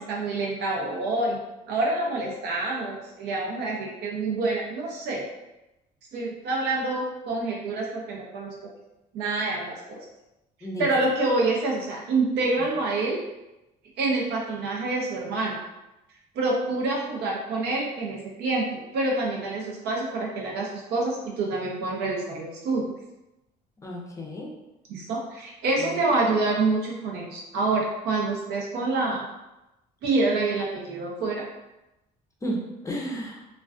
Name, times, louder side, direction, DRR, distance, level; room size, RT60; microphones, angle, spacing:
voice 1, 0.0-1.4 1.7-5.2 6.1-8.7 9.1-10.0 10.8-13.2 14.0-15.6 16.3-22.9 24.9-29.3 30.0-31.4, right 2 dB, 80° right, -2 dB, 0.6 m, -27 dB
voice 2, 23.8-24.5 25.8-26.0 26.3-26.4 32.4-33.4, equal, 20° left, -1 dB, 0.5 m, -33 dB
2.4 x 2.2 x 2.4 m, 0.96 s
cardioid pair, 110°, 17 cm